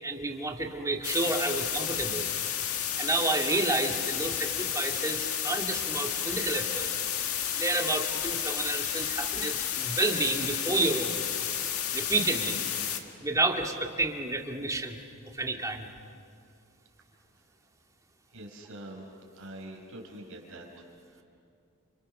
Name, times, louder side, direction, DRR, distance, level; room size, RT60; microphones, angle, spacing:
voice 1, 0.0-2.2 3.0-6.9 7.5-11.2 11.9-12.6 13.2-15.0 15.3-15.9, right 2 dB, 15° right, 2 dB, 2.1 m, -30 dB
sound 1, 1.0-13.0, left 9 dB, 90° left, 1.9 m, -31 dB
voice 2, 18.3-19.1 19.3-21.2, right 1 dB, 70° right, 0 dB, 5.1 m, -45 dB
30.0 x 27.5 x 6.6 m, 2.3 s
head